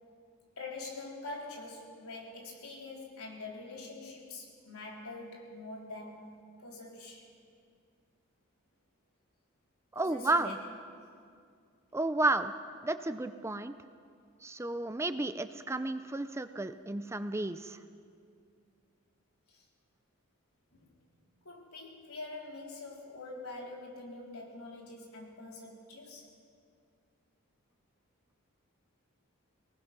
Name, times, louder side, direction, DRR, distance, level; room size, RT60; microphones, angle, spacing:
voice 1, 0.6-7.2 9.9-10.5 19.5-19.6 20.7-20.9 21.4-26.3, left 2 dB, 85° left, -2 dB, 4.0 m, -45 dB
voice 2, 9.9-10.6 11.9-12.5 12.8-13.7 14.4-17.8, right 2 dB, 10° right, 10 dB, 0.5 m, -32 dB
25.0 x 19.0 x 6.0 m, 2.3 s
head